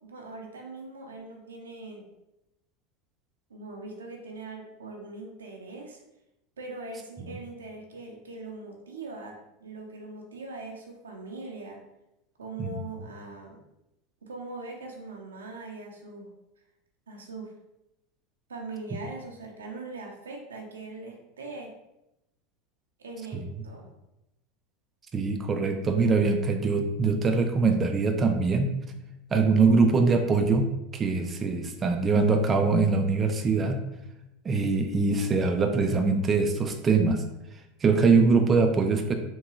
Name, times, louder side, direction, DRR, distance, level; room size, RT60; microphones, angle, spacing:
voice 1, 0.0-2.1 3.5-6.0 6.6-11.8 12.4-13.6 14.2-16.3 17.1-17.5 18.5-21.7 23.0-23.9, right 3 dB, 90° right, 1 dB, 0.7 m, -41 dB
voice 2, 25.1-28.7 29.3-33.8 34.4-37.2 37.8-39.1, right 4 dB, 25° right, 5 dB, 0.4 m, -23 dB
3.6 x 2.2 x 3.1 m, 0.88 s
hypercardioid pair, 90°, 0 cm